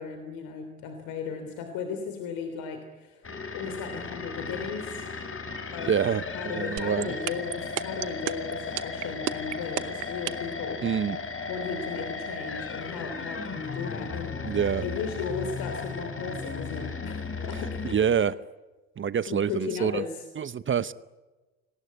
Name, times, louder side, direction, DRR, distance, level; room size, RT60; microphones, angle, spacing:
voice 1, 0.0-3.2 3.5-5.0 5.7-5.9 6.3-10.8 11.5-18.2 19.3-20.2, left 5 dB, 65° left, 6 dB, 3.4 m, -36 dB
sound 1, 3.2-17.9, left 4 dB, 35° left, 3.6 m, -35 dB
voice 2, 5.8-7.1 10.8-11.2 14.4-14.9 17.8-18.3 19.0-20.0 20.4-20.9, right 7 dB, 35° right, 16 dB, 0.9 m, -26 dB
sound 2, 6.8-10.6, right 19 dB, 80° right, 0.9 m, -30 dB
29.0 x 19.0 x 9.7 m, 1.2 s
hypercardioid pair, 55°, 36 cm